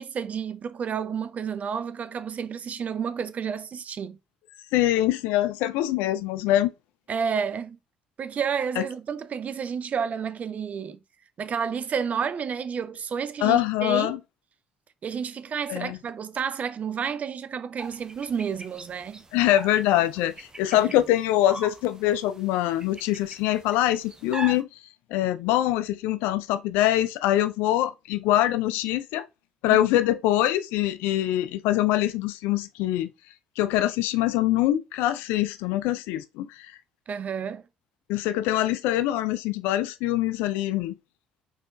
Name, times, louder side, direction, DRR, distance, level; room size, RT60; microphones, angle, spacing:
voice 1, 0.0-4.2 7.1-7.8 8.2-11.0 11.4-14.2 15.0-19.2 29.7-29.8 37.1-37.6, right 7 dB, 40° right, 0.5 m, -30 dB
voice 2, 4.7-6.7 8.8-8.9 13.4-14.2 15.7-16.0 19.3-24.7 25.1-29.3 29.6-33.1 33.6-36.8 38.1-41.0, left 14 dB, 65° left, 0.4 m, -24 dB
sound 1, 17.8-24.6, right 2 dB, 20° right, 0.8 m, -42 dB
4.2 x 4.0 x 2.2 m
figure-of-eight pair, 50°, 4 cm